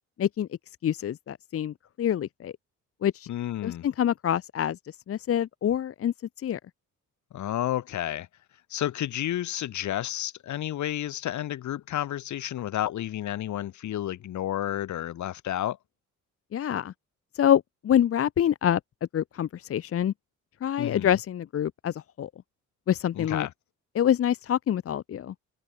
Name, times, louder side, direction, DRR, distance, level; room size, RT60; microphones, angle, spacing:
voice 1, 0.8-2.5 3.0-3.3 3.6-6.6 16.5-16.9 17.3-18.8 19.1-20.1 20.6-22.3 22.9-23.5 23.9-25.3, left 10 dB, 50° left, 0.8 m, -26 dB
voice 2, 3.3-3.9 7.3-8.3 8.7-15.8 20.8-21.2 23.2-23.5, left 12 dB, 70° left, 1.9 m, -31 dB
cardioid pair, 90°, 30 cm